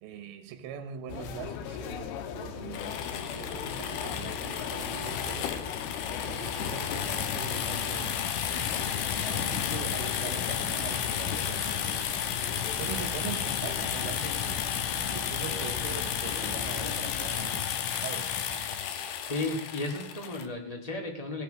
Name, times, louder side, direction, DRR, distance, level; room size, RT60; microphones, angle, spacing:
voice 1, 0.0-5.7 6.2-8.3 8.7-14.7 15.1-18.4, right 8 dB, 75° right, 2.8 m, -42 dB
sound 1, 1.1-17.5, left 7 dB, 85° left, 2.9 m, -39 dB
sound 2, 2.7-20.5, left 8 dB, 70° left, 2.1 m, -32 dB
voice 2, 19.3-21.4, left 2 dB, 25° left, 0.9 m, -34 dB
18.0 x 9.1 x 5.2 m
omnidirectional pair, 4.5 m